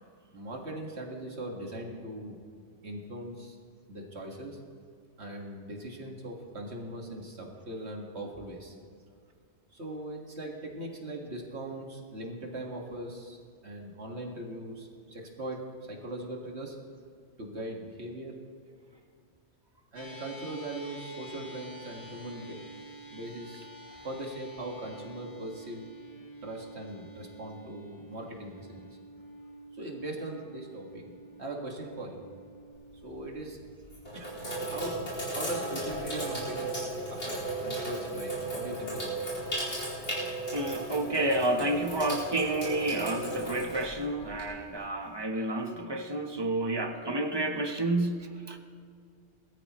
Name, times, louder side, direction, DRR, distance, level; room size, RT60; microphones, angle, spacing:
voice 1, 0.3-2.4 2.8-3.6 3.9-4.6 5.2-8.8 9.7-13.4 13.6-16.8 17.4-18.4 19.9-22.6 23.1-23.7 24.0-25.9 26.4-29.0 29.7-31.1 31.4-32.3 33.0-33.6 34.1-34.3 34.7-35.0 35.3-36.7 37.1-39.2, right 1 dB, 75° right, 0 dB, 2.2 m, -40 dB
sound 1, 20.0-38.5, right 1 dB, 20° left, 1.6 m, -50 dB
Sink (filling or washing), 32.7-33.2 33.8-44.7, right 1 dB, 85° left, 4.9 m, -35 dB
voice 2, 40.5-48.6, right 2 dB, 25° right, 5 dB, 1.0 m, -30 dB
21.0 x 13.5 x 3.1 m, 2.2 s
omnidirectional pair, 1.1 m